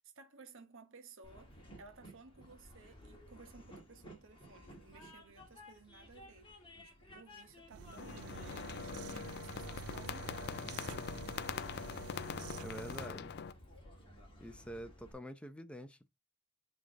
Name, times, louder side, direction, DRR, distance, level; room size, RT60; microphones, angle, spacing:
voice 1, 0.0-6.5 6.8-11.8, right 4 dB, 60° right, 1.1 m, -58 dB
Train, 1.2-15.1, equal, 25° left, 2.0 m, -56 dB
sound 1, 7.7-13.1, right 6 dB, 85° right, 0.5 m, -48 dB
sound 2, 8.0-13.5, left 7 dB, 50° left, 0.4 m, -43 dB
voice 2, 12.6-13.4 14.4-16.1, equal, 5° left, 0.6 m, -47 dB
7.8 x 3.3 x 3.7 m
head